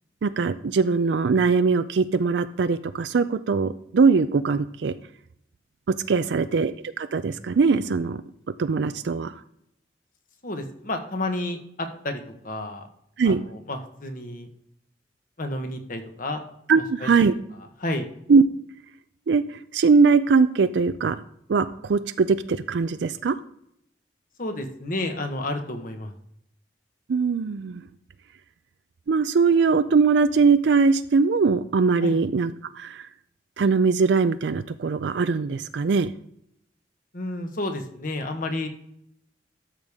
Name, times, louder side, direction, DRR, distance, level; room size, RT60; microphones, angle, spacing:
voice 1, 0.2-4.9 5.9-8.2 8.6-9.3 13.2-13.4 16.7-17.3 18.3-18.4 19.3-21.2 21.5-23.4 27.1-27.8 29.1-33.1 33.6-36.1, right 4 dB, 75° right, 11 dB, 0.4 m, -21 dB
voice 2, 6.1-6.4 10.4-12.9 13.2-14.5 15.4-16.4 17.0-17.3 17.8-18.1 24.4-26.1 32.0-32.1 37.1-38.7, left 1 dB, 50° left, 6 dB, 1.3 m, -31 dB
12.5 x 6.7 x 3.6 m, 0.73 s
head